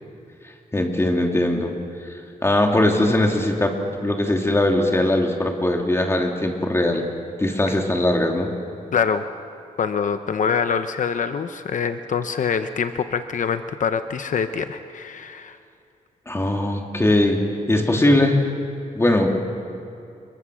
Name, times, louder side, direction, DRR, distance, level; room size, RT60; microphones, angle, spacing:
voice 1, 0.7-1.7 2.4-3.7 4.0-7.0 7.4-8.5 16.3-17.4 17.7-18.4 18.9-19.4, left 1 dB, 20° left, 2 dB, 2.8 m, -20 dB
voice 2, 8.9-9.3 9.8-15.6, left 6 dB, 65° left, 9 dB, 0.8 m, -24 dB
27.5 x 23.0 x 6.4 m, 2.7 s
wide cardioid pair, 110°, 14 cm